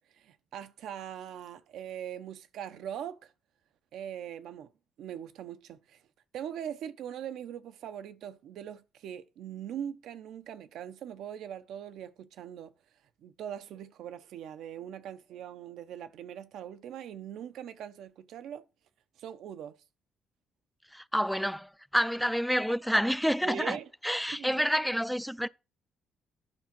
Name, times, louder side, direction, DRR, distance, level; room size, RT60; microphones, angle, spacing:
voice 1, 0.1-3.3 3.9-4.7 5.0-6.1 6.3-12.7 13.2-18.6 19.2-19.8 23.4-23.9 24.3-24.6, right 9 dB, 80° right, 0.7 m, -41 dB
voice 2, 20.9-23.8 24.0-25.5, equal, ahead, 0.4 m, -28 dB
9.9 x 3.7 x 5.9 m
cardioid pair, 90°, 0 cm